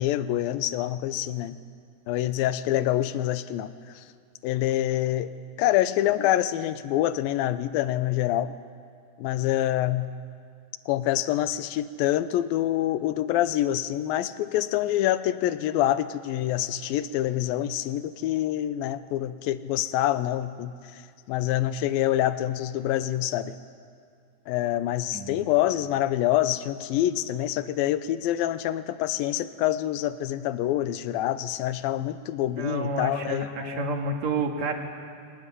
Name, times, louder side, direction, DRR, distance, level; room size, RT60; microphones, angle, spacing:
voice 1, 0.0-1.6 2.1-3.7 4.4-5.3 5.6-8.5 9.2-10.1 10.9-20.7 21.3-23.6 24.5-33.8, left 13 dB, 90° left, 13 dB, 2.6 m, -26 dB
voice 2, 25.1-25.4 32.5-34.8, right 3 dB, 55° right, 2 dB, 3.0 m, -29 dB
24.5 x 19.0 x 9.9 m, 2.3 s
omnidirectional pair, 4.1 m